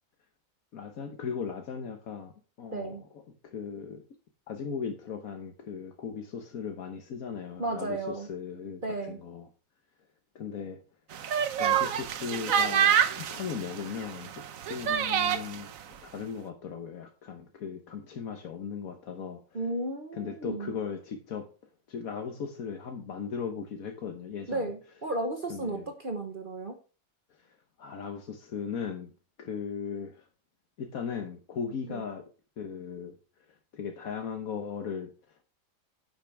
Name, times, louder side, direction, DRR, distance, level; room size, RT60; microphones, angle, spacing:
voice 1, 0.7-2.3 2.6-3.0 3.4-4.0 4.5-9.5 10.3-10.8 11.6-15.7 16.0-19.4 20.1-21.5 21.9-24.7 25.5-25.9 27.4-29.1 29.4-30.2 30.8-32.3 32.6-33.2 33.7-35.4, left 6 dB, 80° left, 5 dB, 1.5 m, -37 dB
voice 2, 2.7-3.0 7.6-8.3 8.8-9.2 19.5-20.8 24.5-26.8 31.9-32.0, right 2 dB, 40° right, 4 dB, 1.3 m, -34 dB
sound 1, 11.1-15.6, right 8 dB, 70° right, 1.2 m, -27 dB
10.0 x 8.1 x 3.4 m, 0.34 s
omnidirectional pair, 1.5 m